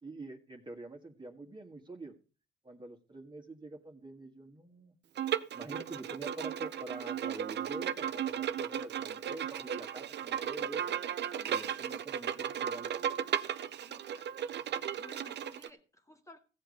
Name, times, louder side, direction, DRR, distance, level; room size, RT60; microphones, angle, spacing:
voice 1, 0.0-2.1 2.6-4.9 5.5-10.9 11.5-12.9, right 2 dB, 25° right, 1.8 m, -46 dB
Bowed string instrument, 5.2-15.7, right 9 dB, 60° right, 0.8 m, -35 dB
voice 2, 11.3-11.6 13.8-14.4 15.0-16.4, left 1 dB, 15° left, 2.0 m, -56 dB
15.5 x 8.0 x 5.2 m
cardioid pair, 90°, 20 cm